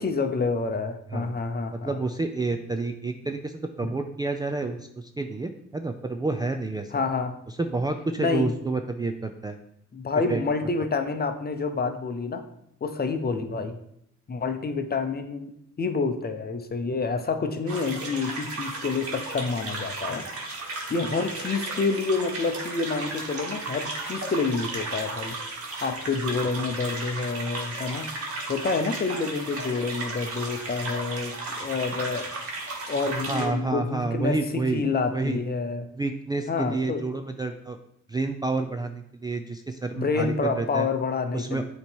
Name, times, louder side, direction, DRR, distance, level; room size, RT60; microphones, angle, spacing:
voice 1, 0.0-1.9 3.8-3.9 6.9-7.3 8.2-8.5 9.9-12.4 12.8-13.8 14.3-20.3 20.9-25.4 25.8-28.1 28.5-32.3 32.9-35.9 36.5-37.0 39.9-41.6, left 4 dB, 30° left, 8 dB, 0.7 m, -28 dB
voice 2, 1.8-6.9 7.6-9.6 10.3-10.4 33.3-34.8 35.1-35.4 35.9-37.8 38.1-40.9 41.3-41.6, right 3 dB, 15° right, 6 dB, 0.4 m, -29 dB
sound 1, 17.7-33.5, right 2 dB, 50° right, 1.6 m, -34 dB
8.4 x 3.1 x 4.5 m, 0.74 s
cardioid pair, 90°, 30 cm